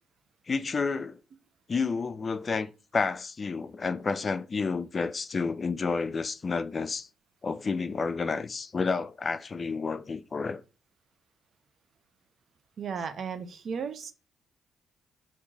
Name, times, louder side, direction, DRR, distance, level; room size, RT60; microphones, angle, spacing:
voice 1, 0.5-1.2 1.7-7.1 7.4-10.6, left 4 dB, 40° left, 0.3 m, -30 dB
voice 2, 12.8-14.1, right 6 dB, 60° right, 0.6 m, -35 dB
3.0 x 2.6 x 3.4 m
supercardioid pair, 55°, 0 cm